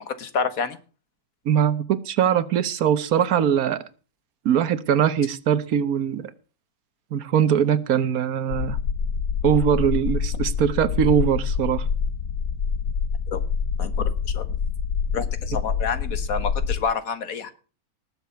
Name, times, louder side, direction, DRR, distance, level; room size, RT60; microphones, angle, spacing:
voice 1, 0.1-0.8 13.3-13.4 13.8-13.9 14.3-14.5 15.1-17.5, left 5 dB, 70° left, 11 dB, 1.7 m, -28 dB
voice 2, 1.5-3.8 4.4-6.3 7.1-8.8 9.4-11.9, right 8 dB, 75° right, 14 dB, 1.4 m, -21 dB
sound 1, 8.5-16.8, left 6 dB, 90° left, 1.5 m, -26 dB
19.0 x 7.4 x 5.7 m, 0.37 s
omnidirectional pair, 1.5 m